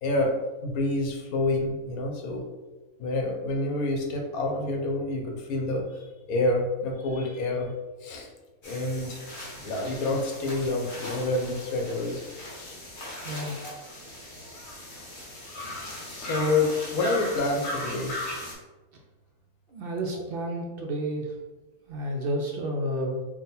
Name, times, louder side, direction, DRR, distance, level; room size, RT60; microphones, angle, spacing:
voice 1, 0.0-2.5 3.0-7.7 8.0-8.3 8.6-9.2 9.6-12.3 12.6-12.8 13.6-13.7 14.9-15.1 16.2-18.1, left 2 dB, 80° left, 1 dB, 1.2 m, -28 dB
sound 1, 8.6-18.5, left 1 dB, 50° left, 1.4 m, -38 dB
voice 2, 13.2-13.6 19.7-21.3 21.9-23.2, right 1 dB, 70° right, 0 dB, 0.5 m, -31 dB
3.7 x 2.3 x 4.0 m, 1.2 s
omnidirectional pair, 1.5 m